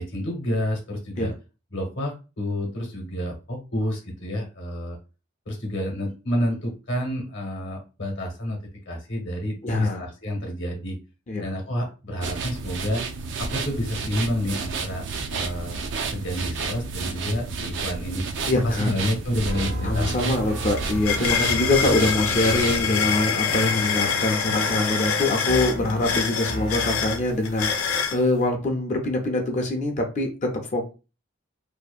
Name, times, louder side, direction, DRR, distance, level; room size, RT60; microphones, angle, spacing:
voice 1, 0.0-1.3 1.7-5.0 5.5-8.6 8.9-11.0 11.4-13.0 13.4-15.0 15.3-15.8 16.1-18.2 18.6-20.4, equal, 60° left, 2 dB, 0.8 m, -29 dB
voice 2, 9.6-10.1 11.3-11.4 18.5-19.0 19.8-30.9, left 2 dB, 35° left, 2 dB, 0.4 m, -24 dB
sound 1, 12.2-22.8, right 4 dB, 55° right, 0.3 m, -31 dB
sound 2, 19.5-27.5, equal, 80° right, 0.9 m, -34 dB
sound 3, 19.6-19.7 20.0-28.2, left 6 dB, 90° left, 0.4 m, -26 dB
2.7 x 2.0 x 2.3 m, 0.31 s
head